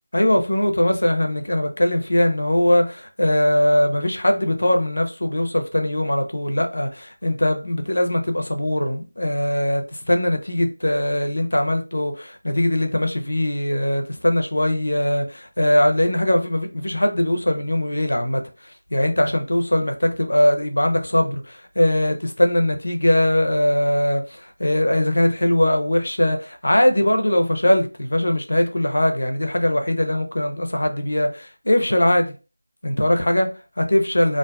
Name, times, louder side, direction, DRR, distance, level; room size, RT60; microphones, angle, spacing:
voice 1, 0.1-32.3 32.8-33.5 33.8-34.4, left 1 dB, 85° left, 0.6 m, -21 dB
2.5 x 2.3 x 2.2 m
figure-of-eight pair, 180°, 0 cm